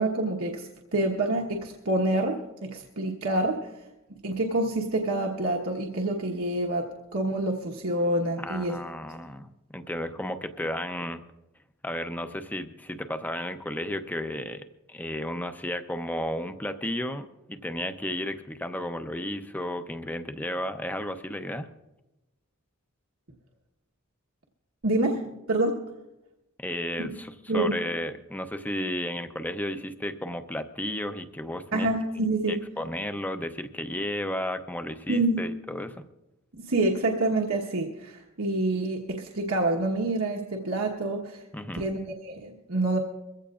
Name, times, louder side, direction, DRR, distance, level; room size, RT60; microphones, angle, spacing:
voice 1, 0.0-3.7 4.2-6.9 7.1-8.7 9.1-9.2 24.8-25.8 27.0-27.2 27.5-27.7 31.7-32.6 35.1-35.5 36.6-41.4 41.7-43.0, right 2 dB, 75° right, -1 dB, 1.2 m, -27 dB
voice 2, 8.4-11.2 11.8-21.7 26.6-31.9 32.5-36.0 41.5-41.9, left 1 dB, 10° left, 8 dB, 0.6 m, -33 dB
22.5 x 15.5 x 2.5 m, 0.96 s
head